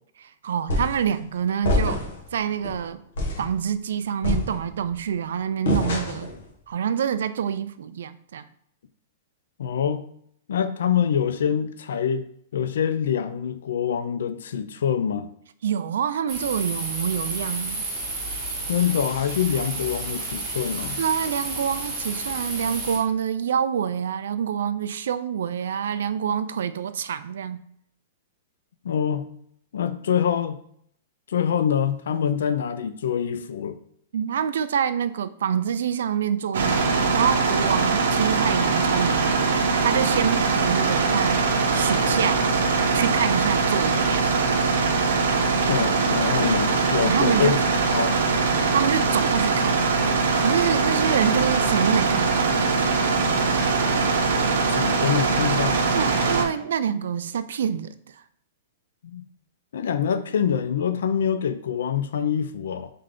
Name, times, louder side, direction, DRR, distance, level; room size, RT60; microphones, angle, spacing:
voice 1, 0.2-2.0 2.3-3.0 3.4-6.3 6.7-8.5 15.6-17.8 21.0-27.6 34.1-36.9 37.1-39.5 39.8-42.4 42.9-44.3 47.0-47.7 48.7-49.8 50.4-52.5 55.9-58.1, right 8 dB, 70° right, 0.3 m, -26 dB
sound 1, 0.7-1.1 1.6-2.2 2.6-2.8 3.2-3.5 4.2-4.9 5.7-6.4, left 2 dB, 60° left, 1.0 m, -25 dB
voice 2, 9.6-10.0 10.5-12.3 12.5-15.3 18.7-21.0 28.8-29.3 29.7-30.6 31.3-33.8 45.7-47.6 47.9-48.2 54.7-55.8 59.0-59.2 59.7-62.9, left 8 dB, 80° left, 0.3 m, -25 dB
sound 2, 16.3-23.0, right 2 dB, 20° right, 1.0 m, -31 dB
sound 3, 36.5-56.4, right 4 dB, 90° right, 0.8 m, -22 dB
3.7 x 3.3 x 3.6 m
supercardioid pair, 180°, 0 cm